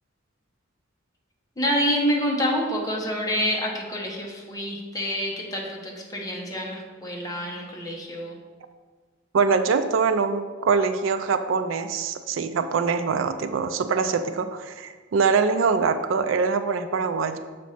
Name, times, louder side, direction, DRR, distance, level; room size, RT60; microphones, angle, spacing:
voice 1, 1.6-8.4, equal, 20° left, -2 dB, 1.1 m, -27 dB
voice 2, 9.3-17.4, right 5 dB, 75° right, 10 dB, 0.4 m, -23 dB
7.1 x 3.1 x 5.6 m, 1.5 s
head